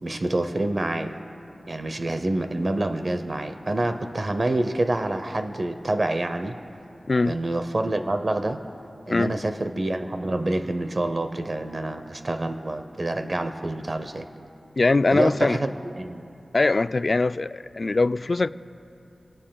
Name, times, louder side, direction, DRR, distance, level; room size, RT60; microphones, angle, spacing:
voice 1, 0.0-1.2 1.7-6.6 7.3-8.6 9.1-14.3 15.1-16.2, right 2 dB, 45° right, 8 dB, 0.7 m, -27 dB
voice 2, 7.1-7.4 9.1-9.3 14.8-15.6 16.5-18.5, left 3 dB, 50° left, 14 dB, 0.3 m, -22 dB
29.0 x 17.5 x 2.3 m, 2.7 s
wide cardioid pair, 70°, 0 cm